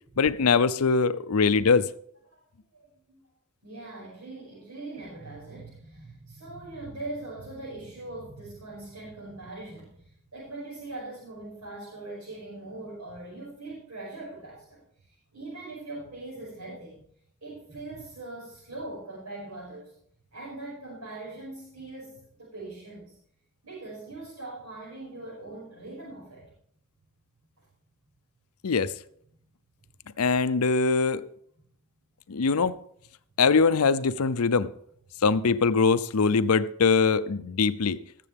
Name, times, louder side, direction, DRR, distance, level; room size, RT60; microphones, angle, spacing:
voice 1, 0.2-1.9 28.6-28.9 30.2-31.2 32.3-32.8 33.4-34.7 35.2-38.0, left 4 dB, 85° left, 0.6 m, -22 dB
voice 2, 2.7-3.2 3.6-17.0 17.4-20.0 20.3-23.2 23.6-26.5 27.6-27.7, right 2 dB, 80° right, 6.1 m, -41 dB
20.0 x 7.6 x 3.5 m
head